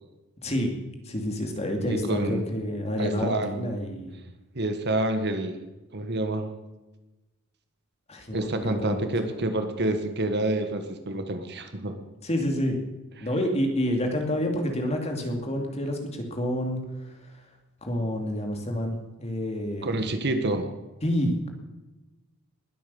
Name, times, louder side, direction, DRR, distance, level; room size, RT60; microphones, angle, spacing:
voice 1, 0.4-0.7 1.0-4.2 8.1-9.4 12.2-12.8 13.2-17.2 17.8-20.0 21.0-21.5, equal, 30° left, 3 dB, 2.6 m, -29 dB
voice 2, 1.9-2.4 3.0-3.5 4.5-5.6 5.9-6.5 8.3-12.0 19.8-20.7, right 2 dB, 50° right, 7 dB, 1.6 m, -28 dB
20.0 x 8.8 x 7.1 m, 1.1 s
head